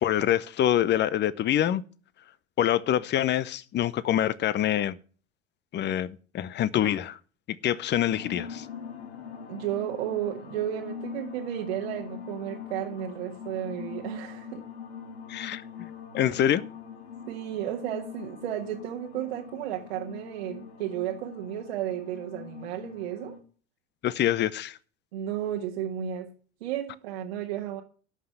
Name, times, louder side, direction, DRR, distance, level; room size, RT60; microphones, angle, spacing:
voice 1, 0.0-1.8 2.6-5.0 5.7-7.2 7.6-8.7 15.3-15.9 16.1-16.6 24.0-24.8, left 11 dB, 35° left, 0.8 m, -25 dB
sound 1, 8.1-23.4, left 6 dB, 85° left, 2.2 m, -42 dB
voice 2, 9.5-14.6 17.3-23.4 25.1-26.3 26.6-27.8, right 11 dB, 70° right, 1.5 m, -33 dB
11.5 x 5.8 x 7.9 m
hypercardioid pair, 75°, 31 cm